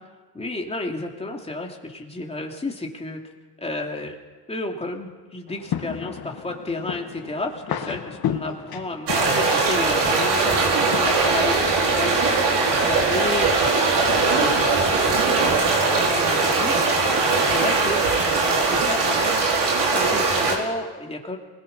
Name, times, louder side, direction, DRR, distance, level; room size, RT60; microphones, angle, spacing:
voice 1, 0.3-3.2 3.6-4.1 4.5-14.7 15.0-16.9 17.4-19.6 19.9-21.4, left 2 dB, 15° left, 1 dB, 2.9 m, -32 dB
sound 1, 5.5-12.4, left 8 dB, 60° left, 1.8 m, -34 dB
sound 2, 9.1-20.5, right 3 dB, 75° right, 4.9 m, -20 dB
26.0 x 21.0 x 5.5 m, 1.4 s
cardioid pair, 110°, 41 cm